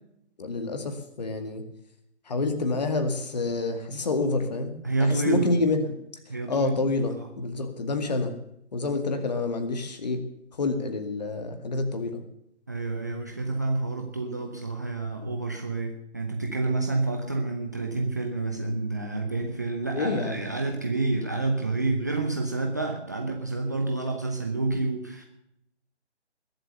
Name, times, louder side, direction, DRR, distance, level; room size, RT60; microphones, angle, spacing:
voice 1, 0.4-1.6 2.3-4.7 5.0-5.9 6.5-8.3 8.7-10.2 10.6-12.2 19.9-20.4, left 3 dB, 35° left, 8 dB, 2.1 m, -28 dB
voice 2, 4.8-5.5 6.3-6.7 7.1-7.3 12.7-25.2, right 3 dB, 15° right, 3 dB, 0.7 m, -29 dB
21.0 x 7.9 x 6.8 m, 0.77 s
figure-of-eight pair, 150°, 35 cm